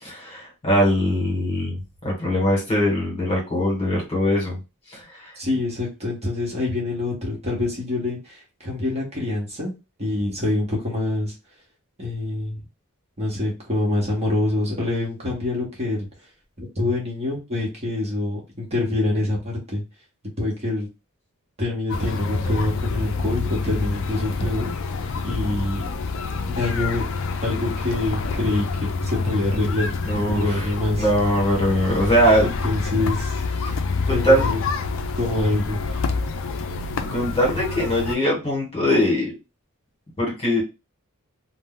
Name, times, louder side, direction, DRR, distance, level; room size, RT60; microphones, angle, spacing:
voice 1, 0.0-4.6 4.9-5.3 30.1-32.5 33.6-33.7 34.0-34.5 37.0-39.3 40.2-40.6, equal, 30° left, -1 dB, 1.3 m, -21 dB
voice 2, 5.4-9.7 10.0-11.3 12.0-12.6 13.2-16.1 16.6-19.8 20.4-20.9 21.6-24.7 25.2-25.9 26.5-27.0 27.4-29.9 30.3-31.1 32.4-33.4 34.1-34.6 35.1-36.1, left 2 dB, 30° right, -3 dB, 1.1 m, -25 dB
sound 1, 21.9-38.2, left 4 dB, 65° left, 0.4 m, -27 dB
2.6 x 2.1 x 3.7 m, 0.27 s
head